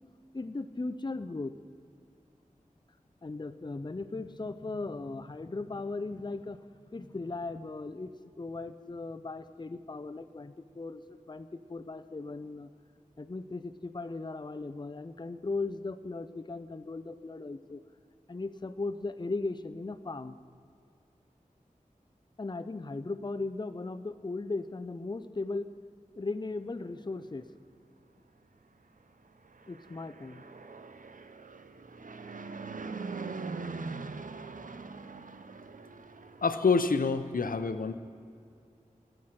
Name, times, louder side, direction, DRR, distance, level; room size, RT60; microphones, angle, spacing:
voice 1, 0.3-1.6 3.2-6.6 6.9-8.1 8.4-12.7 13.2-17.8 18.3-20.4 22.4-25.7 26.2-27.5 29.7-30.4, left 3 dB, 30° left, 9 dB, 0.5 m, -37 dB
Fixed-wing aircraft airplane, 29.5-36.8, right 4 dB, 70° right, 0.6 m, -42 dB
voice 2, 36.4-37.9, left 4 dB, 85° left, 10 dB, 0.6 m, -27 dB
20.0 x 7.9 x 5.8 m, 2.4 s
wide cardioid pair, 55°, 14 cm